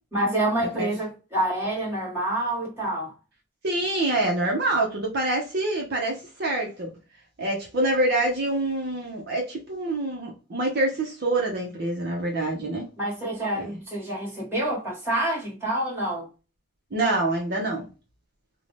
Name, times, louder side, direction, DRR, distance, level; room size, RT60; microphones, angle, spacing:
voice 1, 0.1-3.1 13.0-16.3, right 1 dB, 10° right, 1.3 m, -27 dB
voice 2, 3.6-6.9 7.4-12.9 13.6-13.7 16.9-17.9, right 2 dB, 50° right, 0.6 m, -26 dB
2.6 x 2.1 x 3.1 m
head